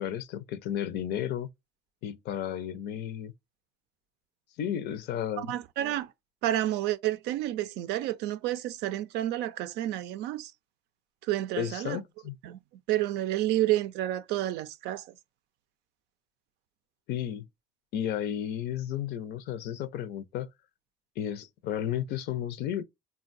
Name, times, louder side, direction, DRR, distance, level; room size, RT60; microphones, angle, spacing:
voice 1, 0.0-1.5 2.0-3.3 4.6-5.5 11.6-12.3 17.1-17.4 17.9-20.5 21.2-22.8, left 10 dB, 80° left, 0.5 m, -33 dB
voice 2, 5.4-6.1 6.4-10.5 11.3-12.0 12.4-12.6 12.9-15.0, right 14 dB, 90° right, 0.4 m, -30 dB
3.7 x 2.2 x 2.5 m
cardioid pair, 110°, 17 cm